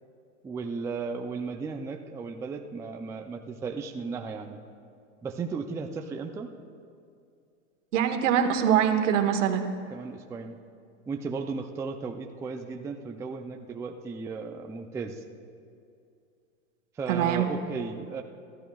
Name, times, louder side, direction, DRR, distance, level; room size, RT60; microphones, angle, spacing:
voice 1, 0.4-4.6 5.2-6.5 9.9-10.6 11.1-15.2 17.0-18.2, right 4 dB, 10° right, 4 dB, 0.4 m, -35 dB
voice 2, 7.9-9.7 17.1-17.5, right 9 dB, 75° right, 6 dB, 1.3 m, -23 dB
26.5 x 12.5 x 2.3 m, 2.4 s
hypercardioid pair, 125°, 38 cm